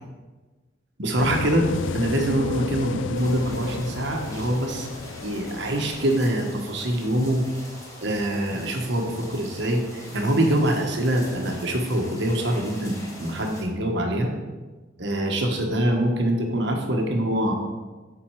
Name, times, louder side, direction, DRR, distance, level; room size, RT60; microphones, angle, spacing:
voice 1, 1.0-1.7 1.9-4.9 5.2-7.4 8.0-14.3 15.0-17.6, right 1 dB, 65° right, 2 dB, 1.3 m, -24 dB
sound 1, 1.2-6.2, left 5 dB, 80° left, 0.4 m, -32 dB
sound 2, 3.1-13.6, left 1 dB, 20° left, 2.4 m, -43 dB
7.4 x 5.9 x 4.8 m, 1.3 s
head